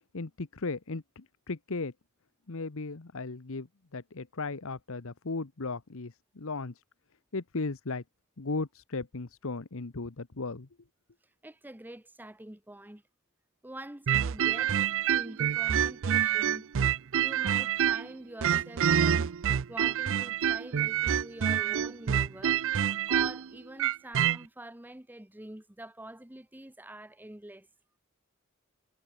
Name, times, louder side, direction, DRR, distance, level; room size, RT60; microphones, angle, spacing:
voice 1, 0.1-1.9 2.5-6.8 7.3-8.0 8.4-10.7, left 3 dB, 65° left, 1.0 m, -36 dB
voice 2, 11.4-13.0 13.6-14.8 15.0-16.7 17.1-19.3 19.7-22.6 23.1-27.7, right 1 dB, 10° right, 1.0 m, -45 dB
sound 1, 14.1-18.1 18.4-24.4, right 9 dB, 60° right, 0.5 m, -27 dB
head